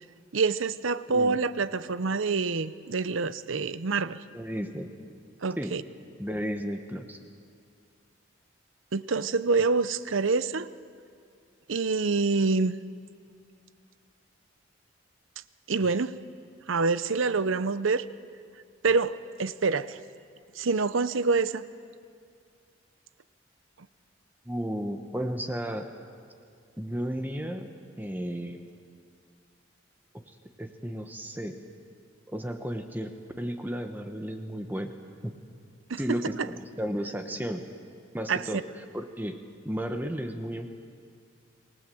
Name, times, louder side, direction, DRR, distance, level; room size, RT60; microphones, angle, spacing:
voice 1, 0.3-4.2 5.4-5.8 8.9-10.7 11.7-12.8 15.7-16.1 16.7-18.1 18.8-20.0 20.6-21.6 35.9-36.2 38.3-38.4, right 4 dB, 85° right, 15 dB, 0.7 m, -26 dB
voice 2, 4.3-4.9 5.6-5.8 6.2-7.2 24.4-25.9 26.8-27.7 28.0-28.6 30.1-31.6 32.3-33.1 33.4-34.9 35.2-35.3 36.0-37.6 38.1-38.6 38.9-40.7, equal, 10° right, 6 dB, 1.2 m, -33 dB
27.5 x 19.5 x 7.8 m, 2.3 s
head